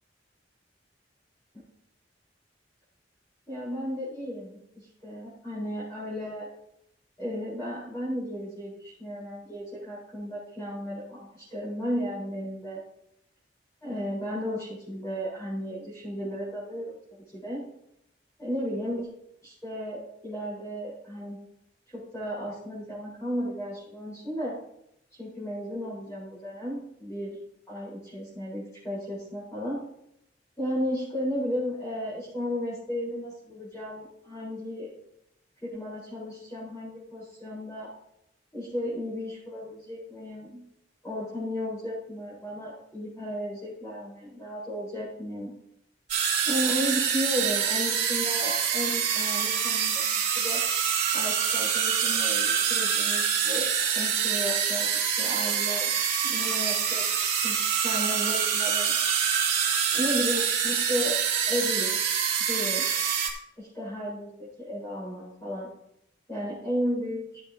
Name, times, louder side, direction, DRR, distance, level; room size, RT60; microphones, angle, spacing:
voice 1, 3.5-6.5 7.2-12.8 13.8-17.6 18.4-19.1 19.4-21.4 21.9-24.6 25.1-27.4 27.7-29.8 30.6-34.9 35.6-37.9 38.5-40.6 41.0-45.5 46.4-50.6 51.1-53.7 53.9-55.9 56.2-57.0 57.4-58.9 59.9-61.2 61.5-62.0 62.5-62.8 63.6-65.7 66.3-67.4, equal, 15° left, -9 dB, 4.9 m, -34 dB
sound 1, 46.1-63.3, right 7 dB, 45° right, 3.4 m, -26 dB
15.5 x 7.9 x 3.0 m, 0.78 s
head